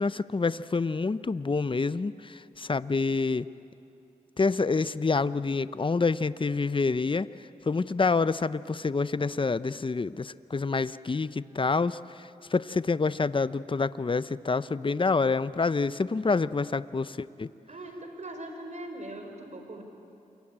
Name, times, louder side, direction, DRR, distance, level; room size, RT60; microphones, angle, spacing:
voice 1, 0.0-3.5 4.4-7.3 7.7-12.0 12.5-17.5, left 4 dB, 35° left, 16 dB, 0.7 m, -27 dB
voice 2, 17.7-19.8, right 1 dB, 50° right, 4 dB, 5.0 m, -40 dB
28.0 x 22.5 x 8.9 m, 2.6 s
cardioid pair, 50°, 15 cm